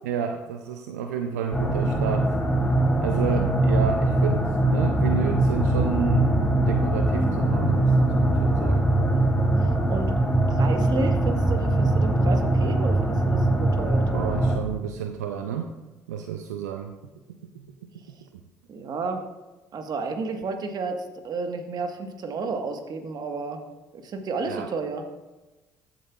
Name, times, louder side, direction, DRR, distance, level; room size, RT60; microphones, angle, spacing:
voice 1, 0.0-2.3 3.0-8.9 14.1-15.7 16.1-16.9 17.6-17.7 18.1-18.2 24.4-24.7, right 7 dB, 85° right, 6 dB, 0.4 m, -31 dB
sound 1, 1.5-14.6, right 1 dB, 5° left, 2.9 m, -22 dB
voice 2, 3.1-3.5 8.9-9.2 9.6-10.1 10.5-14.1 18.7-19.2 19.7-23.6 23.9-25.0, right 4 dB, 50° right, 5 dB, 1.3 m, -32 dB
13.5 x 8.1 x 2.4 m, 1.1 s
hypercardioid pair, 55°, 9 cm